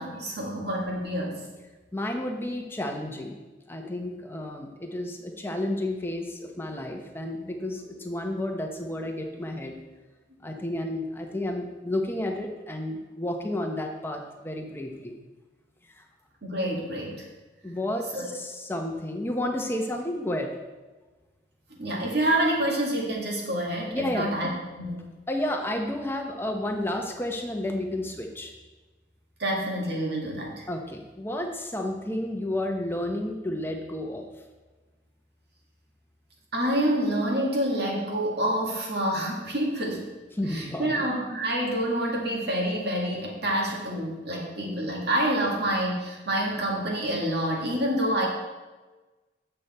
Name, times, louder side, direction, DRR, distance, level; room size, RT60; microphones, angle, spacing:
voice 1, 0.0-1.4 16.4-17.2 18.1-18.3 21.8-24.5 24.8-25.1 29.4-30.7 36.5-40.1 40.5-48.3, right 1 dB, 60° right, -2 dB, 2.0 m, -27 dB
voice 2, 1.9-3.4 3.7-9.8 10.4-15.1 16.0-16.1 17.6-20.6 23.9-24.3 25.3-28.5 30.7-34.3 40.3-41.0, left 1 dB, 10° left, 2 dB, 0.9 m, -31 dB
8.5 x 6.8 x 4.3 m, 1.2 s
head